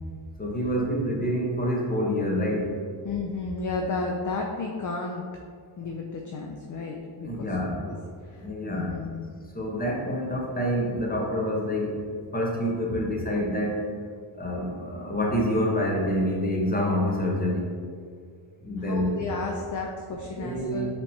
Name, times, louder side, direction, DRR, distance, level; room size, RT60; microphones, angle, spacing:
voice 1, 0.4-2.7 7.2-8.0 8.4-9.0 9.5-12.0 12.3-13.8 14.4-17.7 18.6-19.1 20.3-20.9, equal, 20° left, -2 dB, 1.0 m, -27 dB
voice 2, 3.0-5.2 5.8-8.0 8.3-9.2 18.7-20.9, left 3 dB, 40° left, 1 dB, 0.4 m, -33 dB
5.3 x 3.6 x 2.7 m, 2.1 s
cardioid pair, 95°, 49 cm